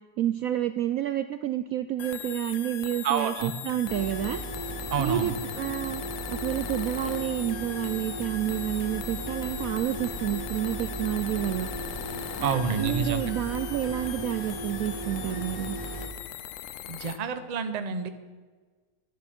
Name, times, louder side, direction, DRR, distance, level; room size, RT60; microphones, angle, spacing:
voice 1, 0.2-4.4 5.0-6.0 6.3-11.7 12.4-15.8, right 12 dB, 70° right, 10 dB, 0.8 m, -29 dB
sound 1, 2.0-17.2, left 12 dB, 75° left, 0.7 m, -40 dB
voice 2, 3.0-3.5 4.9-5.3 12.4-13.2 16.9-18.1, right 6 dB, 40° right, 9 dB, 0.6 m, -28 dB
sound 2, 3.9-16.1, right 1 dB, 15° right, 2.0 m, -37 dB
sound 3, 8.9-15.4, left 1 dB, 50° left, 2.8 m, -47 dB
11.5 x 10.5 x 6.0 m, 1.4 s
omnidirectional pair, 1.8 m